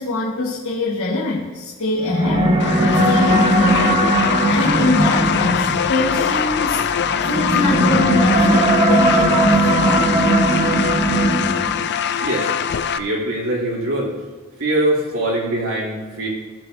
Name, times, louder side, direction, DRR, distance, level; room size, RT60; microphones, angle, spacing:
voice 1, 0.0-2.6 3.0-4.1 4.5-6.8 7.2-10.1, left 3 dB, 80° left, -6 dB, 1.7 m, -23 dB
sound 1, 2.0-11.8, right 1 dB, 30° right, 1.3 m, -18 dB
sound 2, 2.6-13.0, left 8 dB, 50° left, 0.4 m, -22 dB
voice 2, 13.0-14.1 14.6-16.3, right 1 dB, 70° right, -6 dB, 3.1 m, -23 dB
16.0 x 7.6 x 2.7 m, 1.3 s
head